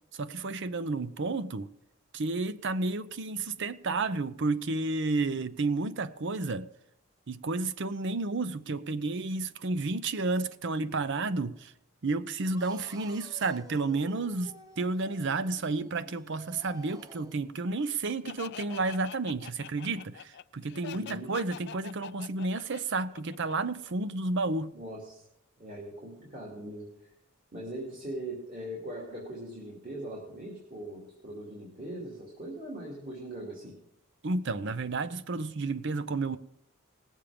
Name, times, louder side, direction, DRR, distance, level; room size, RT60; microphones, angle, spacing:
voice 1, 0.1-1.7 2.1-6.7 7.3-11.7 12.0-24.7 34.2-36.4, right 3 dB, 55° right, 0.7 m, -31 dB
sound 1, 12.5-17.5, right 1 dB, 15° right, 0.8 m, -51 dB
Laughter, 18.2-23.9, left 9 dB, 55° left, 0.4 m, -45 dB
voice 2, 20.9-21.3 24.7-25.2 25.6-26.9 27.5-33.7, right 1 dB, 40° right, 2.6 m, -40 dB
18.5 x 7.4 x 5.0 m
head